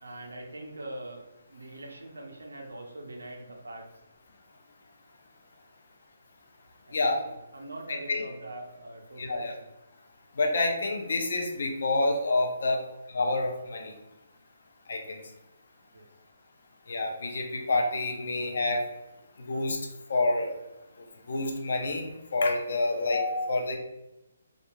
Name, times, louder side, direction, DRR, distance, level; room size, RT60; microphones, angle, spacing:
voice 1, 0.0-1.2 1.5-3.9 6.8-9.5 15.9-16.1, right 1 dB, 85° right, 1 dB, 0.6 m, -42 dB
voice 2, 9.2-9.5 10.3-12.8 13.1-13.9 14.9-15.2 16.9-18.8 19.4-20.5 21.0-23.8, left 2 dB, 65° left, 2 dB, 0.6 m, -28 dB
2.9 x 2.4 x 2.3 m, 0.93 s
hypercardioid pair, 150°, 0 cm